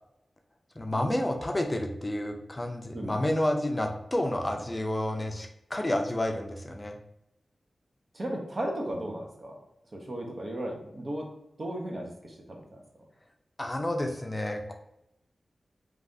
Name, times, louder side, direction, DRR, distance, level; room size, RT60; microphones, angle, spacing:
voice 1, 0.8-7.0 13.6-14.7, left 1 dB, 30° left, 3 dB, 0.5 m, -30 dB
voice 2, 8.1-9.6 9.9-11.3 11.6-12.8, right 1 dB, 55° right, 0 dB, 0.7 m, -35 dB
3.2 x 2.4 x 2.6 m, 0.82 s
cardioid pair, 50°, 0 cm